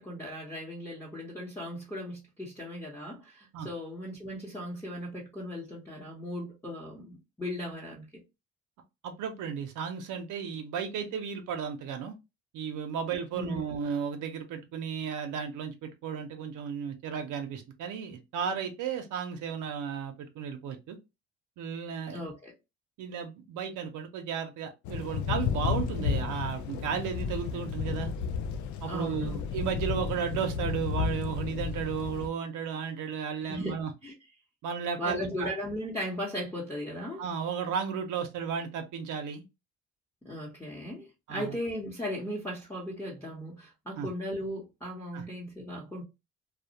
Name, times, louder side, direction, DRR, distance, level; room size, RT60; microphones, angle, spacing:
voice 1, 0.0-8.1 13.3-13.8 22.1-22.5 28.9-29.4 33.5-33.8 34.0-34.1 35.0-37.2 40.2-46.0, equal, 10° left, 0.8 m, -37 dB
voice 2, 9.0-12.2 12.5-21.0 21.6-22.2 23.0-28.1 28.8-33.9 34.6-35.5 37.2-39.4 41.3-41.6 43.9-44.1 45.1-45.2, right 7 dB, 80° right, 0.6 m, -34 dB
Thunder / Rain, 24.8-32.3, left 6 dB, 70° left, 0.4 m, -32 dB
2.3 x 2.0 x 2.7 m
cardioid pair, 90°, 30 cm